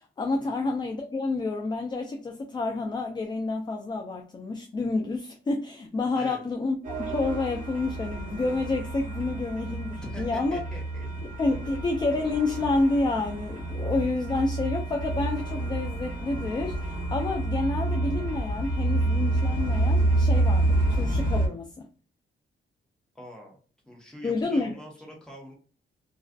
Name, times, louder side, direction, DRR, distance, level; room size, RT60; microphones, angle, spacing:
voice 1, 0.0-10.6 11.4-21.7 24.2-24.7, left 3 dB, 20° left, 0.3 m, -29 dB
sound 1, 6.8-21.5, right 2 dB, 40° right, 0.7 m, -28 dB
voice 2, 10.0-11.1 23.1-23.6 23.9-25.5, equal, 5° left, 0.9 m, -44 dB
2.4 x 2.3 x 2.2 m
cardioid pair, 105°, 21 cm